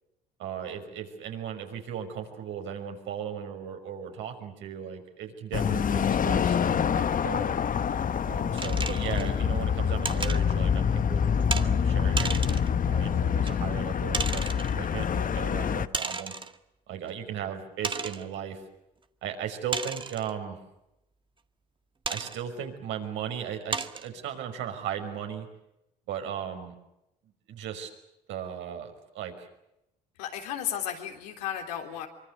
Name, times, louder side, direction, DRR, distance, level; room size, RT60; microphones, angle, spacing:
voice 1, 0.4-7.5 8.3-16.3 16.9-18.6 19.2-20.6 22.1-25.5 26.1-26.7 27.5-27.9 28.3-29.5, right 8 dB, 70° right, 5 dB, 5.8 m, -37 dB
sound 1, 5.5-15.9, left 7 dB, 40° left, 1.2 m, -26 dB
sound 2, 8.6-9.3 10.0-10.4 11.5-11.7 12.2-12.7 13.5-13.6 14.1-14.7 15.9-16.6 17.1-17.2 17.8-18.3 19.7-20.3 22.1-22.4 23.0-23.1 23.7-24.1, right 4 dB, 25° right, 1.8 m, -33 dB
voice 2, 30.2-32.1, left 10 dB, 85° left, 4 dB, 3.8 m, -34 dB
25.0 x 24.5 x 8.2 m, 0.85 s
hypercardioid pair, 60°, 20 cm